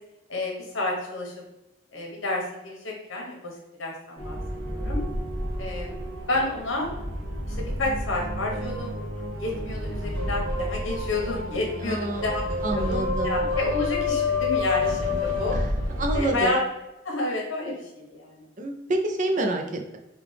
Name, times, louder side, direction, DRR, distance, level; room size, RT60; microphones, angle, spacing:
voice 1, 0.3-1.3 1.9-3.5 3.8-4.4 4.7-5.0 5.6-6.9 7.4-8.9 9.4-12.4 12.7-15.6 16.1-16.6 17.0-18.5, left 2 dB, 85° left, -1 dB, 1.1 m, -30 dB
sound 1, 4.2-16.3, left 2 dB, 80° right, 1.5 m, -29 dB
voice 2, 11.8-12.3 12.6-13.4 15.5-15.7 16.0-16.6 18.6-20.0, right 1 dB, 40° right, 3 dB, 0.5 m, -28 dB
5.0 x 2.3 x 3.3 m, 0.93 s
head